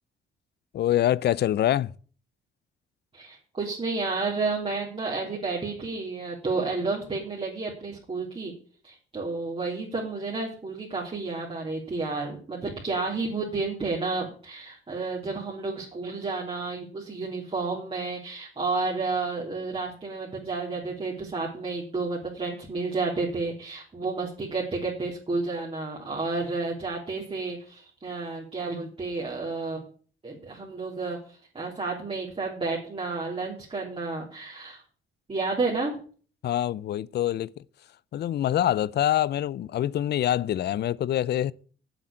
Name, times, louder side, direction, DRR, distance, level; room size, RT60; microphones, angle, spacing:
voice 1, 0.7-1.9 36.4-37.5 38.1-41.5, left 12 dB, 55° left, 0.5 m, -25 dB
voice 2, 3.1-8.5 8.8-29.8 30.2-34.8 35.3-36.0, right 3 dB, 30° right, 3.7 m, -31 dB
8.0 x 7.7 x 8.7 m
cardioid pair, 90°, 20 cm